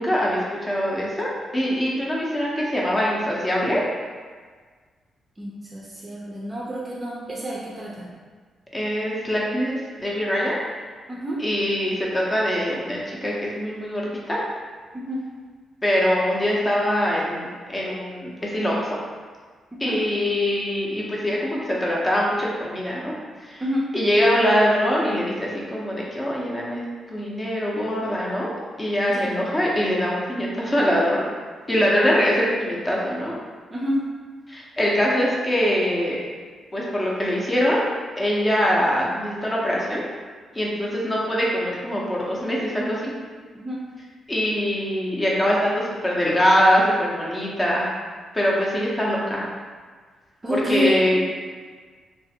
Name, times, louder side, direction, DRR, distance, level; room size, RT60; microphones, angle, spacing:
voice 1, 0.0-3.8 8.7-10.6 11.4-14.4 15.8-19.0 19.8-23.1 23.4-23.6 23.9-28.5 28.8-31.2 31.7-33.3 34.5-36.2 36.7-37.9 38.2-40.0 40.5-43.1 44.3-47.9 48.3-49.5 50.5-51.2, equal, 20° left, -4 dB, 0.6 m, -23 dB
voice 2, 5.4-8.1 11.1-11.4 14.9-15.2 19.8-20.0 23.6-23.9 29.1-29.3 33.7-34.0 43.5-43.8 50.4-51.2, equal, 25° right, -6 dB, 0.5 m, -28 dB
3.2 x 2.4 x 2.8 m, 1.5 s
cardioid pair, 130°, 0 cm